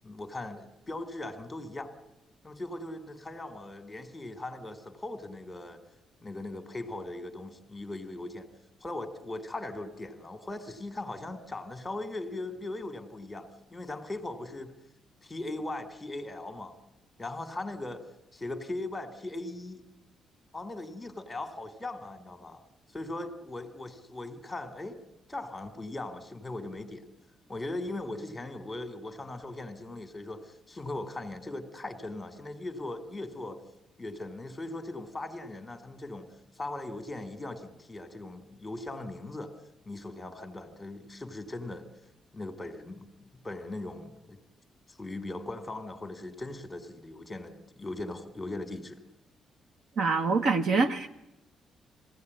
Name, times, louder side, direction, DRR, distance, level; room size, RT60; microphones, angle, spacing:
voice 1, 0.0-1.9 2.4-5.8 6.2-8.5 8.8-14.7 15.2-16.8 17.2-18.0 18.3-19.8 20.5-22.6 22.9-25.0 25.3-27.0 27.5-33.6 34.0-36.3 36.6-39.5 39.9-41.9 42.3-44.4 44.9-49.0, left 2 dB, 10° left, 2.0 m, -39 dB
voice 2, 50.0-51.1, right 4 dB, 60° right, 1.2 m, -25 dB
21.0 x 16.0 x 9.4 m
cardioid pair, 130°, 0 cm